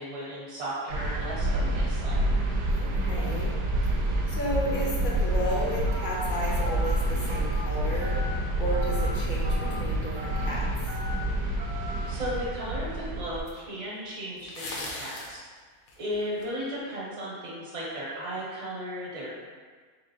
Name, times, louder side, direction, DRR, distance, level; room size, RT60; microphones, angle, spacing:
voice 1, 0.0-2.2 12.1-15.4 16.0-19.4, equal, 55° right, -6 dB, 1.2 m, -35 dB
sound 1, 0.9-13.4, right 1 dB, 80° right, 1.1 m, -28 dB
voice 2, 2.7-3.6 3.8-4.0 4.3-8.2 8.6-10.7, left 1 dB, 50° left, -4 dB, 0.6 m, -33 dB
Telephone, 5.9-6.1 6.6-6.8 7.3-7.6 8.0-8.3 8.7-9.0 9.4-9.7 10.2-10.4 10.9-11.1 11.6-11.9, left 1 dB, 30° right, 0.5 m, -40 dB
sound 2, 12.3-12.4 13.5-13.6 14.4-15.4 15.9-16.5, left 2 dB, 75° left, 1.1 m, -37 dB
3.6 x 3.6 x 2.7 m, 1.5 s
omnidirectional pair, 1.6 m